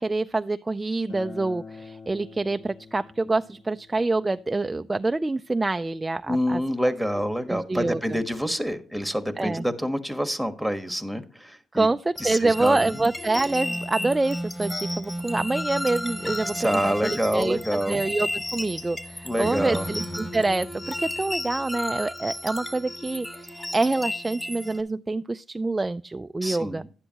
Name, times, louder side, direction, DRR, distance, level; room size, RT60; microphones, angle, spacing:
voice 1, 0.0-6.6 7.5-8.2 9.4-9.7 11.7-16.6 16.8-26.8, right 2 dB, 20° right, 10 dB, 0.3 m, -26 dB
Acoustic guitar, 1.1-6.3, left 4 dB, 45° left, 2.0 m, -46 dB
voice 2, 6.3-11.9 12.2-13.0 16.5-18.1 19.2-19.9 26.4-26.9, equal, ahead, 8 dB, 1.4 m, -27 dB
sound 1, 12.2-24.8, left 1 dB, 20° left, 2.5 m, -33 dB
12.0 x 9.9 x 2.9 m, 0.41 s
cardioid pair, 90°, 0 cm